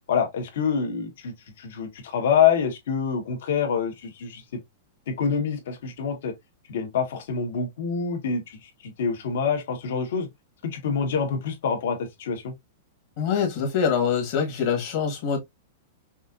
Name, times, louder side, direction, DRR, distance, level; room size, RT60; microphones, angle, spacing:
voice 1, 0.1-4.4 5.1-6.3 6.7-10.3 10.6-12.5, left 6 dB, 70° left, 1.6 m, -26 dB
voice 2, 13.2-15.4, left 7 dB, 45° left, 1.5 m, -24 dB
5.4 x 2.7 x 2.5 m
supercardioid pair, 160°, 0 cm